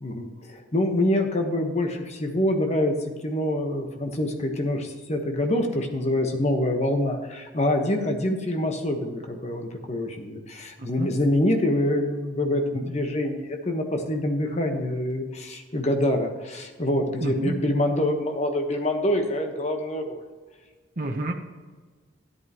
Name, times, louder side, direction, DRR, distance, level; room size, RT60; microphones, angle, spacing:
voice 1, 0.0-2.9 3.2-20.2, left 1 dB, 35° left, 3 dB, 1.3 m, -25 dB
voice 2, 10.8-11.1 12.7-12.9 17.2-17.6 21.0-21.3, right 1 dB, 45° right, 0 dB, 1.0 m, -30 dB
13.0 x 11.0 x 3.0 m, 1.4 s
head